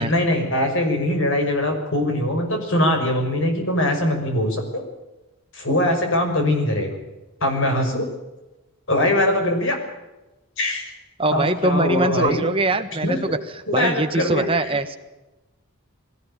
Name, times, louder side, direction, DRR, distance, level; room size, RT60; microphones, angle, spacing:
voice 1, 0.0-4.8 5.5-7.0 7.4-8.1 8.9-9.8 10.6-10.8 11.3-12.4 13.0-13.3 13.7-14.7, left 1 dB, 55° left, 4 dB, 6.1 m, -22 dB
voice 2, 11.2-13.4 13.7-15.0, right 2 dB, 25° right, 7 dB, 1.6 m, -22 dB
21.5 x 18.0 x 8.9 m, 1.0 s
head